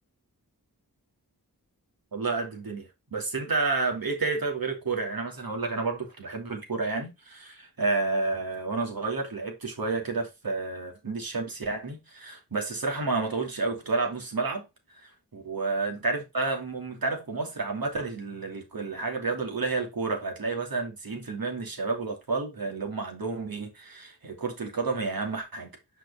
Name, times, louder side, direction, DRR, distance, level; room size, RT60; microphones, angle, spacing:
voice 1, 2.1-14.6 15.0-25.7, right 3 dB, 65° right, 2.8 m, -30 dB
6.0 x 4.8 x 4.2 m
cardioid pair, 45°, 38 cm